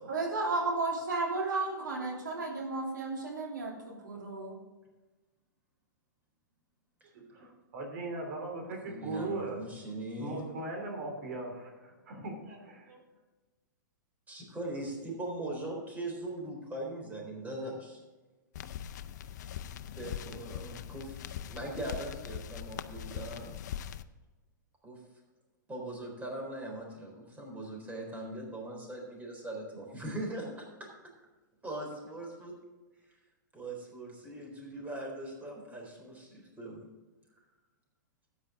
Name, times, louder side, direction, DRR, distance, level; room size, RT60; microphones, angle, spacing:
voice 1, 0.1-4.6, right 3 dB, 80° right, -2 dB, 3.1 m, -33 dB
voice 2, 7.7-13.0, right 2 dB, 60° right, 1 dB, 3.0 m, -39 dB
voice 3, 8.8-10.5 14.3-18.0 19.9-21.2 21.5-23.6 24.8-25.0 25.7-30.7 31.6-32.5 33.5-36.9, right 1 dB, 15° right, -1 dB, 4.0 m, -40 dB
sound 1, 18.5-24.0, left 10 dB, 60° left, 0.6 m, -41 dB
13.0 x 9.3 x 3.8 m, 1.2 s
hypercardioid pair, 110°, 10 cm